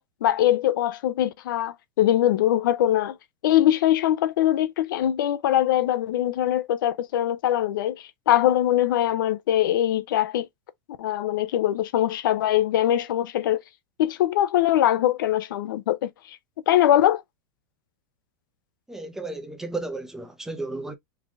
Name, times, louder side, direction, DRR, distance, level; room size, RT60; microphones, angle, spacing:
voice 1, 0.0-3.2 3.4-10.5 11.0-13.6 14.0-16.4 16.7-17.2, left 12 dB, 75° left, 0.7 m, -22 dB
voice 2, 18.9-21.0, right 2 dB, 5° right, 0.6 m, -33 dB
3.7 x 3.4 x 3.3 m
supercardioid pair, 160°, 11 cm